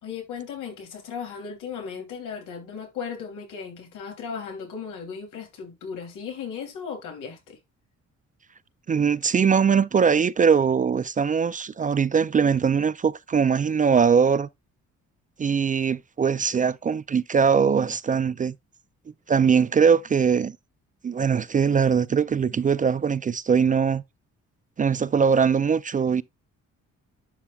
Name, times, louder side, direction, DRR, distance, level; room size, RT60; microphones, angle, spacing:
voice 1, 0.0-7.6, left 6 dB, 85° left, 3.0 m, -36 dB
voice 2, 8.9-14.5 15.4-18.5 19.3-20.6 21.0-24.0 24.8-26.2, right 6 dB, 25° right, 0.4 m, -21 dB
11.0 x 5.8 x 2.3 m
cardioid pair, 90°, 30 cm